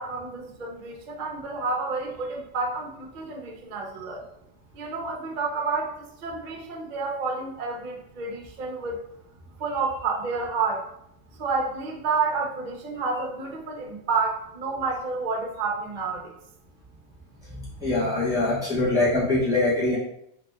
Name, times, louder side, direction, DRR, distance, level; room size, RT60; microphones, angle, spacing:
voice 1, 0.0-4.2 4.7-9.0 9.6-10.9 11.4-16.3, right 4 dB, 45° right, 1 dB, 0.6 m, -29 dB
voice 2, 17.5-20.0, left 2 dB, 5° right, -9 dB, 1.4 m, -23 dB
4.0 x 3.0 x 3.6 m, 0.75 s
omnidirectional pair, 1.5 m